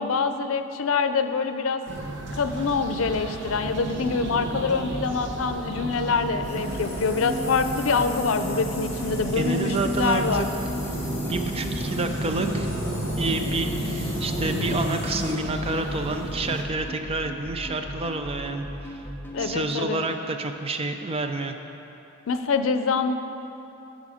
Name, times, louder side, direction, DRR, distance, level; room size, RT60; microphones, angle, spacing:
voice 1, 0.0-1.8 2.4-10.5 19.3-20.0 22.3-23.1, left 4 dB, 90° left, 9 dB, 0.5 m, -25 dB
sound 1, 1.9-16.6, right 1 dB, 65° right, 1.0 m, -33 dB
sound 2, 6.4-15.3, left 1 dB, 30° left, 2.4 m, -34 dB
voice 2, 9.3-10.5 11.3-12.7 13.2-18.7 19.4-21.6, right 3 dB, 30° right, 6 dB, 0.5 m, -29 dB
sound 3, 9.9-19.5, equal, 10° left, 0.8 m, -37 dB
13.5 x 5.2 x 5.0 m, 3.0 s
head